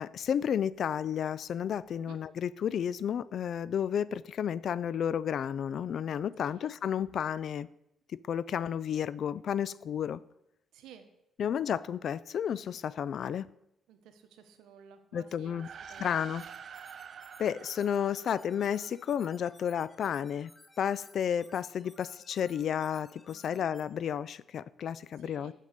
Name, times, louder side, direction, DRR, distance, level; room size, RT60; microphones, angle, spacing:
voice 1, 0.0-7.7 8.1-10.2 11.4-13.5 15.1-15.7 16.0-16.4 17.4-20.5 20.8-25.5, left 8 dB, 60° left, 19 dB, 0.4 m, -32 dB
voice 2, 6.4-6.7 10.7-11.1 13.9-16.2 23.3-23.7 25.2-25.5, right 8 dB, 90° right, 8 dB, 1.1 m, -54 dB
sound 1, 15.4-19.1, right 7 dB, 55° right, 0.3 m, -48 dB
sound 2, 16.4-23.8, left 2 dB, 15° left, 1.1 m, -59 dB
7.5 x 6.4 x 6.6 m, 0.81 s
cardioid pair, 90°, 0 cm